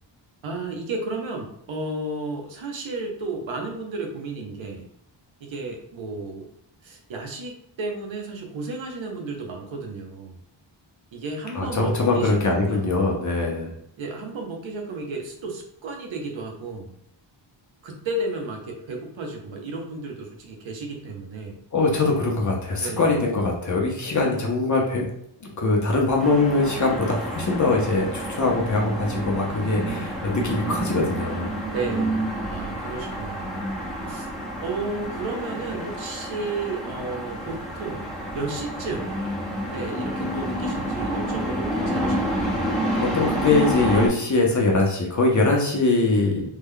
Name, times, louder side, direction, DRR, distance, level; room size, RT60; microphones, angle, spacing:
voice 1, 0.4-4.9 5.4-6.5 6.8-10.4 11.1-12.9 14.0-16.9 17.8-21.6 22.8-23.2 31.7-33.8 34.1-34.3 34.6-38.1 38.3-39.1 39.7-42.6, right 3 dB, 80° right, 2 dB, 0.9 m, -33 dB
voice 2, 11.5-13.7 21.7-25.1 25.4-31.5 42.9-46.5, left 3 dB, 40° left, -1 dB, 0.6 m, -22 dB
sound 1, 26.2-44.1, right 1 dB, ahead, 0.6 m, -29 dB
3.2 x 2.2 x 3.6 m, 0.72 s
wide cardioid pair, 180°, 46 cm